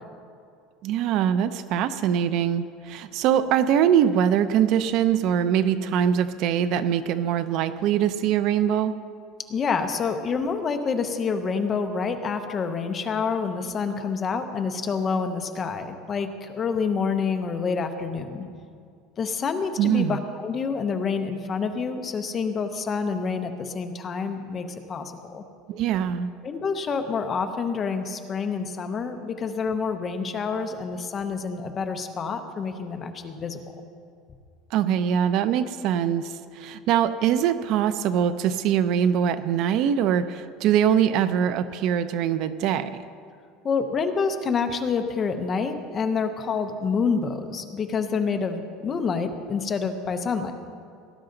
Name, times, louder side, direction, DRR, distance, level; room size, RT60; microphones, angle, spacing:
voice 1, 0.8-9.0 19.8-20.2 25.7-26.3 34.7-43.0, right 9 dB, 45° right, 12 dB, 0.5 m, -23 dB
voice 2, 9.5-18.4 19.2-25.4 26.4-33.6 43.6-50.5, left 5 dB, 20° left, 6 dB, 0.8 m, -27 dB
18.5 x 11.5 x 3.9 m, 2.3 s
cardioid pair, 170°, 0 cm